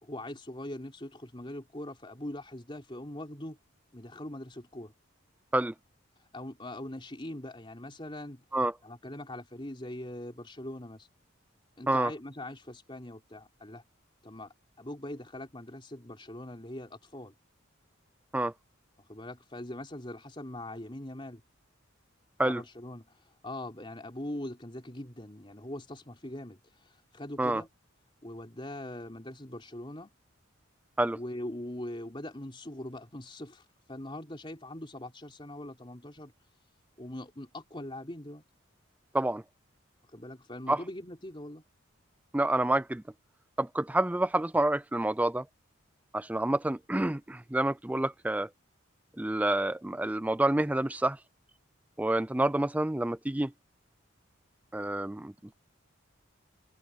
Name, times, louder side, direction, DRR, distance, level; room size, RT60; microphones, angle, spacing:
voice 1, 0.0-3.6 3.9-4.9 6.2-8.4 8.8-11.1 11.8-13.8 14.2-17.3 19.1-21.4 22.4-27.7 28.2-30.1 31.1-36.3 37.0-38.4 40.1-41.6, left 1 dB, 25° left, 3.7 m, -42 dB
voice 2, 42.3-43.0 43.6-45.4 46.1-48.5 49.2-51.2 52.0-53.5 54.7-55.5, right 1 dB, 5° right, 0.3 m, -28 dB
open air
head